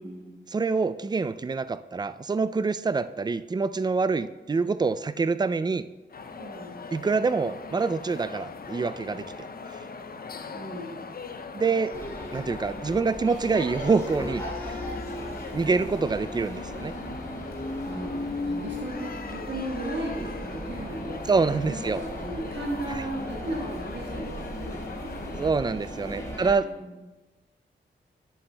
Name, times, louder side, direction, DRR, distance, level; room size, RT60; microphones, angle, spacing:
voice 1, 0.0-0.5 6.4-6.9 10.5-11.2 17.8-18.1 18.4-21.2 21.7-25.5 26.1-26.3 26.6-27.1, right 1 dB, 65° right, -3 dB, 1.6 m, -36 dB
voice 2, 0.5-5.9 6.9-9.2 11.5-12.0 12.3-14.8 15.5-16.9 21.3-22.0 25.3-26.7, right 4 dB, 20° right, 14 dB, 0.3 m, -26 dB
sound 1, 6.1-25.5, left 4 dB, 50° left, 0.6 m, -41 dB
sound 2, 11.9-26.5, left 1 dB, 15° left, 2.0 m, -36 dB
10.5 x 7.5 x 2.3 m, 1.1 s
cardioid pair, 40°, 20 cm